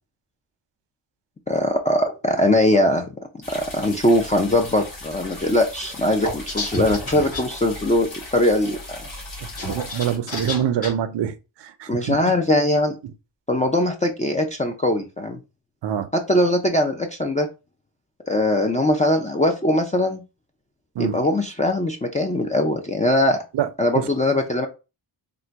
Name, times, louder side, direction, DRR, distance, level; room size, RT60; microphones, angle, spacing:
voice 1, 1.5-3.1 3.5-9.0 11.9-12.9 13.5-15.4 16.1-17.5 18.3-20.2 21.0-23.4 23.8-24.7, left 1 dB, 20° left, 0.4 m, -21 dB
sound 1, 3.4-10.2, left 2 dB, 50° left, 1.7 m, -38 dB
sound 2, 6.2-7.4 9.4-10.9, left 1 dB, 35° left, 2.1 m, -30 dB
voice 2, 9.7-12.2 13.0-13.1 15.8-16.1 21.0-21.2 23.5-23.7 24.0-24.1, right 9 dB, 75° right, 0.6 m, -25 dB
3.8 x 2.2 x 4.5 m
wide cardioid pair, 135°, 43 cm